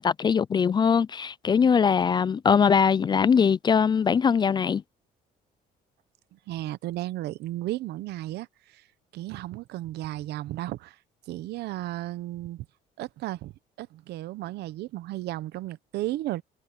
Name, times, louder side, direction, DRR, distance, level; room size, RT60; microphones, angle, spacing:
voice 1, 0.0-4.8, left 6 dB, 25° left, 0.3 m, -21 dB
voice 2, 6.3-8.8 9.1-11.0 11.3-12.6 13.0-13.5 13.8-16.4, right 15 dB, 75° right, 0.9 m, -34 dB
cardioid pair, 110°, 17 cm